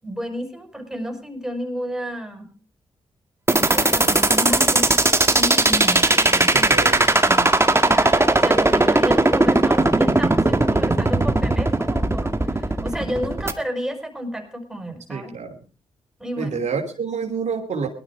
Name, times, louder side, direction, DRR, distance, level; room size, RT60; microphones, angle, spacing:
voice 1, 0.0-2.5 3.5-6.8 7.3-15.3 16.2-16.6, equal, 5° right, 4 dB, 5.9 m, -31 dB
sound 1, 3.5-13.5, right 2 dB, 20° right, 2.0 m, -17 dB
voice 2, 6.5-7.1 15.1-15.6 16.4-17.9, right 5 dB, 65° right, 2 dB, 2.9 m, -28 dB
18.5 x 12.5 x 4.9 m, 0.38 s
supercardioid pair, 45°, 13 cm